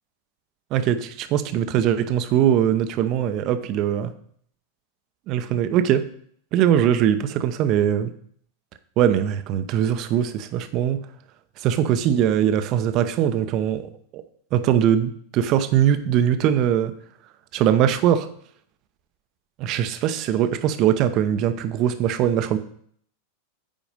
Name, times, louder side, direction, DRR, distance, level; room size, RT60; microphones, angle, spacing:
voice 1, 0.7-4.1 5.3-6.1 6.5-8.1 9.0-11.0 11.6-14.2 14.5-16.9 17.5-18.3 19.6-22.6, right 10 dB, 40° right, 11 dB, 0.7 m, -21 dB
8.9 x 5.0 x 5.2 m, 0.62 s
figure-of-eight pair, 90°, 0 cm